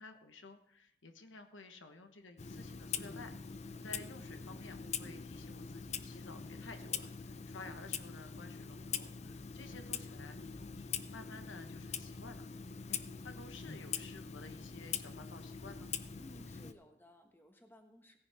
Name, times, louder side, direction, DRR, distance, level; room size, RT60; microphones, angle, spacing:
voice 1, 0.0-3.3 3.8-12.4 12.9-15.9, left 3 dB, 80° left, 7 dB, 1.2 m, -53 dB
Clock, 2.4-16.7, left 6 dB, 35° left, 0.5 m, -43 dB
voice 2, 16.2-18.2, equal, 10° left, 4 dB, 1.3 m, -58 dB
17.0 x 10.5 x 3.5 m, 0.77 s
head